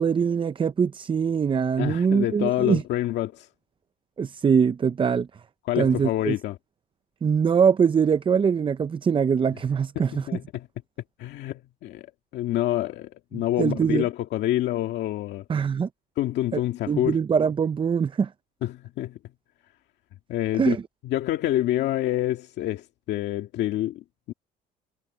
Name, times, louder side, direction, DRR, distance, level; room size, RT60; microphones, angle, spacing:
voice 1, 0.0-2.8 4.2-5.3 5.8-6.4 7.2-10.3 13.3-14.0 15.5-15.9 16.5-16.6 16.9-18.3 20.6-20.8, right 6 dB, 30° right, 0.6 m, -23 dB
voice 2, 1.8-3.5 5.7-6.6 10.0-10.7 11.2-12.1 12.3-15.4 16.2-17.2 18.6-19.2 20.3-20.8 21.0-24.3, left 14 dB, 80° left, 1.9 m, -27 dB
cardioid pair, 105°, 18 cm